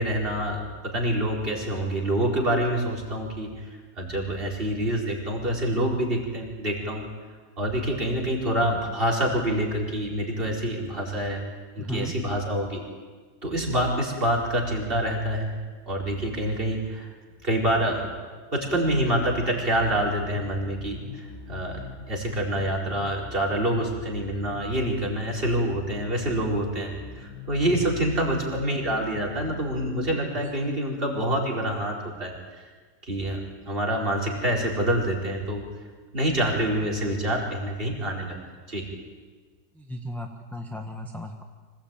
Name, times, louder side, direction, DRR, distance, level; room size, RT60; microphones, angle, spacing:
voice 1, 0.0-3.6 4.0-7.0 7.6-11.4 11.8-12.8 13.4-15.5 15.9-17.1 17.4-18.1 18.5-21.8 22.1-32.6 33.0-33.4 33.7-35.6 36.1-38.4 38.7-38.8, right 1 dB, 30° right, 0 dB, 4.6 m, -26 dB
voice 2, 11.8-12.1 27.8-28.0 39.7-41.4, equal, ahead, 2 dB, 1.4 m, -35 dB
sound 1, 18.6-30.1, left 3 dB, 85° left, 2.9 m, -42 dB
25.5 x 17.0 x 9.0 m, 1.5 s
omnidirectional pair, 1.8 m